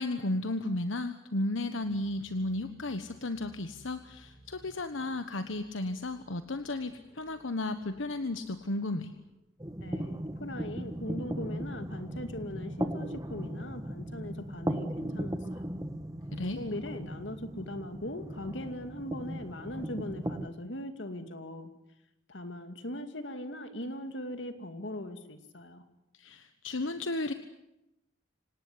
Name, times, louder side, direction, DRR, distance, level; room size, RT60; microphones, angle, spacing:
voice 1, 0.0-9.1 16.3-16.6 26.1-27.3, left 2 dB, 85° left, 9 dB, 1.3 m, -34 dB
sound 1, 1.7-9.4, equal, 5° right, 6.4 m, -59 dB
sound 2, 9.6-20.5, right 1 dB, 20° right, 1.4 m, -37 dB
voice 2, 9.8-15.7 16.4-21.7 22.3-25.8, left 1 dB, 65° left, 8 dB, 2.5 m, -40 dB
26.0 x 18.5 x 9.7 m, 0.88 s
head